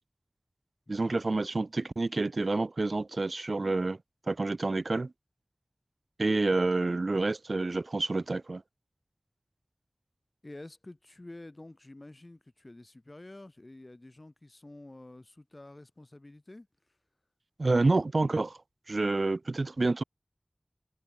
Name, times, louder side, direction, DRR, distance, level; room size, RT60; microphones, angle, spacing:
voice 1, 0.9-4.0 4.3-5.1 6.2-8.6 17.6-18.6 18.9-20.0, right 3 dB, 70° right, 0.8 m, -28 dB
voice 2, 10.4-16.7, left 2 dB, 40° left, 4.0 m, -49 dB
wide cardioid pair, 45°, 0 cm